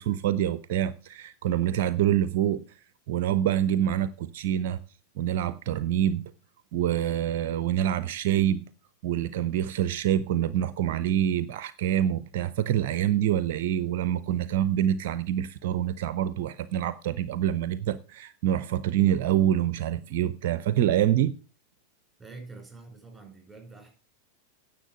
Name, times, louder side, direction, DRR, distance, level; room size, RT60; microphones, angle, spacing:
voice 1, 0.0-2.8 3.1-4.8 5.2-6.3 6.7-8.7 9.0-21.4, right 11 dB, 50° right, 0.4 m, -26 dB
voice 2, 22.2-23.9, right 3 dB, 5° right, 5.1 m, -46 dB
9.9 x 6.9 x 6.3 m
figure-of-eight pair, 90°, 0 cm